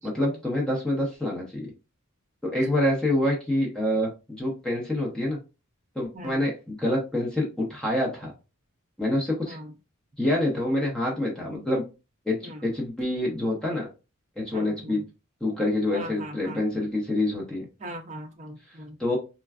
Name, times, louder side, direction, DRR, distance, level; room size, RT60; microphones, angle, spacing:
voice 1, 0.0-1.7 2.4-5.4 5.9-8.3 9.0-9.6 10.2-11.8 12.3-13.9 14.4-15.0 15.4-17.7 19.0-19.2, left 1 dB, 5° left, -3 dB, 0.8 m, -26 dB
voice 2, 14.5-15.0 15.9-16.6 17.8-19.0, right 1 dB, 35° right, 3 dB, 0.6 m, -40 dB
4.4 x 2.3 x 2.3 m, 0.29 s
head